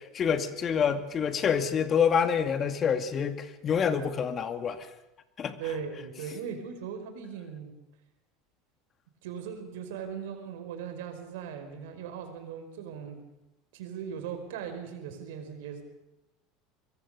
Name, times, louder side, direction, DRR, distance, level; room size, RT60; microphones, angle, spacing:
voice 1, 0.0-4.9 5.4-5.6, left 7 dB, 40° left, 9 dB, 2.4 m, -27 dB
voice 2, 5.6-7.8 9.2-13.2 13.7-15.9, right 7 dB, 75° right, 7 dB, 5.0 m, -39 dB
24.5 x 23.0 x 6.8 m, 0.93 s
hypercardioid pair, 80°, 0 cm